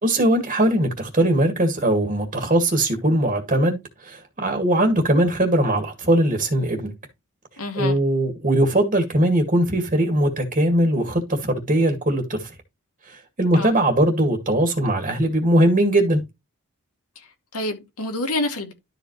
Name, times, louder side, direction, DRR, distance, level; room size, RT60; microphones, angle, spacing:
voice 1, 0.0-6.9 7.8-12.5 13.0-16.2, right 1 dB, 35° right, 2.0 m, -20 dB
voice 2, 7.6-8.0 13.5-13.7 17.2-17.3 17.5-18.7, left 2 dB, 90° left, 2.5 m, -27 dB
12.0 x 5.1 x 3.1 m
head